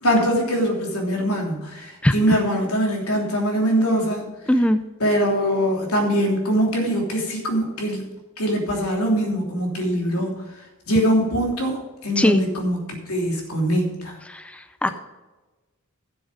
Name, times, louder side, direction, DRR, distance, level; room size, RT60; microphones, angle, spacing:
voice 1, 0.0-4.3 5.0-8.0 8.4-10.3 10.9-14.1, equal, 85° left, 1 dB, 3.1 m, -22 dB
voice 2, 2.0-2.4 4.5-4.8 12.2-12.4 14.3-14.4 14.8-14.9, equal, 5° left, 10 dB, 0.4 m, -19 dB
12.5 x 7.3 x 5.1 m, 1.2 s
head